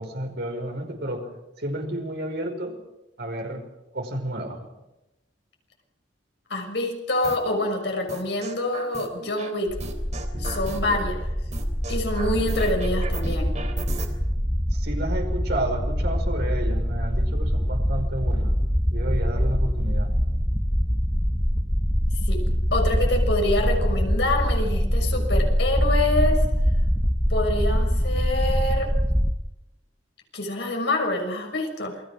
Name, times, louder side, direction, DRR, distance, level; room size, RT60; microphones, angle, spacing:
voice 1, 0.0-2.8 3.2-3.7 3.9-4.7 14.7-18.6 18.9-20.1, right 1 dB, 60° right, 3 dB, 5.3 m, -31 dB
voice 2, 6.5-9.8 10.4-11.3 11.9-13.6 22.3-26.4 27.3-28.9 30.3-32.0, left 1 dB, 65° left, 2 dB, 6.2 m, -26 dB
sound 1, 7.2-7.6 8.1-9.5 9.8-11.0 11.5-14.1, right 3 dB, 40° right, 3.3 m, -36 dB
sound 2, 9.7-29.3, equal, 5° left, 1.2 m, -24 dB
28.0 x 21.0 x 6.3 m, 0.95 s
head